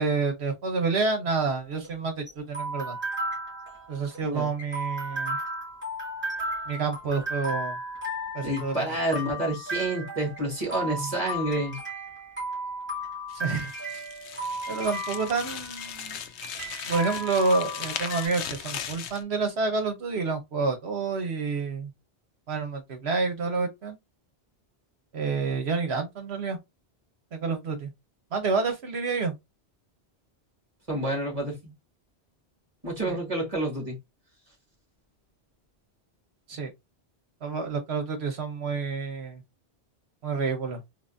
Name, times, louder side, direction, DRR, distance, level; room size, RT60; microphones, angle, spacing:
voice 1, 0.0-3.0 3.9-5.4 6.7-7.8 8.3-9.0 10.9-11.1 13.3-13.7 14.7-16.2 16.9-21.9 22.5-24.0 25.1-26.6 27.3-27.9 28.3-29.3 33.1-33.2 36.5-36.7 37.4-39.4 40.2-40.8, right 4 dB, 75° right, 1.2 m, -28 dB
sound 1, 1.6-18.3, right 1 dB, 10° right, 1.8 m, -35 dB
voice 2, 8.4-11.8 30.9-31.7 32.8-34.0, right 1 dB, 35° right, 2.0 m, -29 dB
sound 2, 13.3-19.2, left 8 dB, 85° left, 0.9 m, -38 dB
3.9 x 3.0 x 2.6 m
omnidirectional pair, 1.1 m